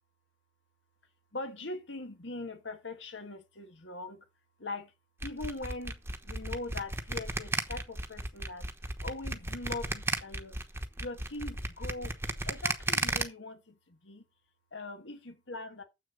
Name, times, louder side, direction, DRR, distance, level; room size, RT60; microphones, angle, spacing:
voice 1, 1.3-4.2 4.6-4.9 5.2-8.7 9.0-10.6 11.0-12.2 12.4-14.2 14.7-15.8, left 2 dB, 85° left, 1.7 m, -41 dB
sound 1, 5.2-13.2, right 2 dB, 15° right, 1.0 m, -33 dB
7.6 x 6.5 x 5.3 m
head